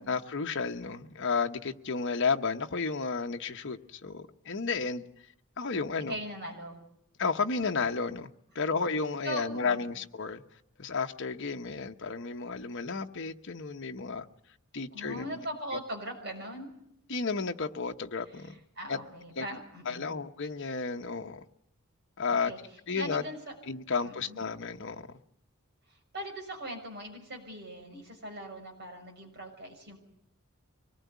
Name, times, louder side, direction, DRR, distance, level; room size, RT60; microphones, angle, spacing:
voice 1, 0.0-5.0 5.6-6.2 7.2-10.4 10.8-14.3 14.7-15.4 17.1-18.5 18.9-19.0 19.4-19.5 19.8-21.5 22.2-22.5 22.9-23.2 23.7-25.2, left 4 dB, 55° left, 1.1 m, -32 dB
voice 2, 6.1-6.8 8.7-8.8 9.2-9.9 14.9-16.7 18.4-20.1 22.3-22.6 22.9-23.5 24.0-24.4 25.9-30.0, right 1 dB, 50° right, 6.4 m, -40 dB
24.5 x 19.5 x 9.5 m
head